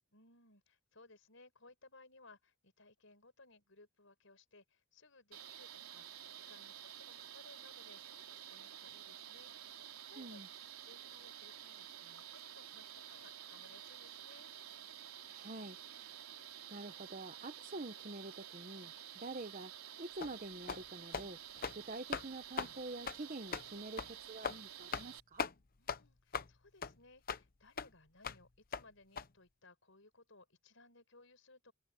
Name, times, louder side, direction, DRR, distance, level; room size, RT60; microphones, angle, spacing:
voice 1, 0.1-10.4 10.8-14.5 25.8-31.7, left 3 dB, 65° left, 7.2 m, -63 dB
sound 1, 5.3-25.2, right 10 dB, 85° right, 3.8 m, -51 dB
voice 2, 15.3-16.3 16.7-19.7 20.0-21.4 21.7-25.5, right 2 dB, 40° right, 1.2 m, -47 dB
sound 2, 20.2-20.3 20.7-20.8 21.1-21.3 21.6-21.8 22.1-22.3 22.6-22.7 23.1-23.2 23.5-23.7 24.0-24.1 24.4-24.6 24.9-25.1 25.4-25.5 25.9-26.0 26.3-26.5 26.8-26.9 27.3-27.4 27.8-27.9 28.2-28.4 28.7-28.8 29.2-29.3, left 5 dB, 45° left, 0.9 m, -39 dB
open air
head